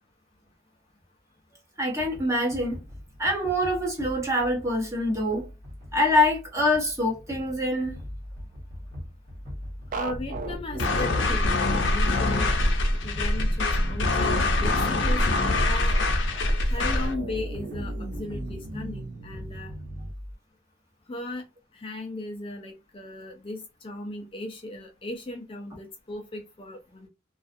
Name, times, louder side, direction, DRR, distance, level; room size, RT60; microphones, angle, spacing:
voice 1, 1.8-2.8 3.2-5.5 5.9-7.9, left 1 dB, 15° right, 0.9 m, -25 dB
sound 1, 2.0-20.3, left 1 dB, 65° right, 1.1 m, -39 dB
voice 2, 9.9-15.2 15.7-15.9 16.6-19.7 21.1-21.4 21.7-27.1, left 2 dB, 30° left, 0.4 m, -37 dB
sound 2, 9.9-20.1, right 4 dB, 45° right, 0.3 m, -39 dB
sound 3, 10.8-17.1, left 2 dB, 90° left, 0.6 m, -24 dB
2.4 x 2.3 x 2.5 m
head